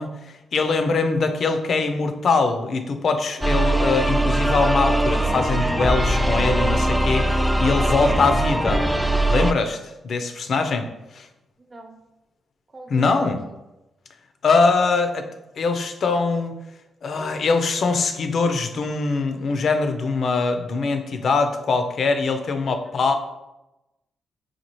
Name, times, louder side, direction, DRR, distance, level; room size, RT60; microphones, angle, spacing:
voice 1, 0.0-8.8 9.3-10.9 11.1-11.3 12.9-13.4 14.4-15.3 15.6-16.5 17.0-23.1, left 4 dB, 60° left, 7 dB, 0.4 m, -22 dB
sound 1, 3.4-9.5, right 1 dB, 5° right, 0.3 m, -21 dB
voice 2, 12.7-13.5 23.1-23.2, right 2 dB, 35° right, 3 dB, 0.8 m, -43 dB
4.1 x 2.3 x 3.0 m, 0.96 s
supercardioid pair, 50°, 0 cm